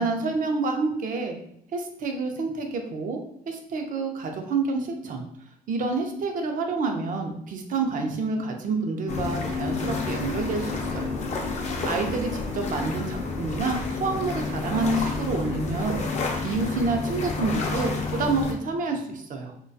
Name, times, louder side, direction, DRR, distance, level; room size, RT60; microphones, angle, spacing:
voice 1, 0.0-1.4 1.7-3.2 3.5-5.3 5.7-11.2 11.5-16.0 16.4-19.5, right 3 dB, 60° right, 4 dB, 0.5 m, -28 dB
sound 1, 9.1-18.5, left 3 dB, 50° left, 0.4 m, -29 dB
2.3 x 2.2 x 2.5 m, 0.71 s
cardioid pair, 100°, 16 cm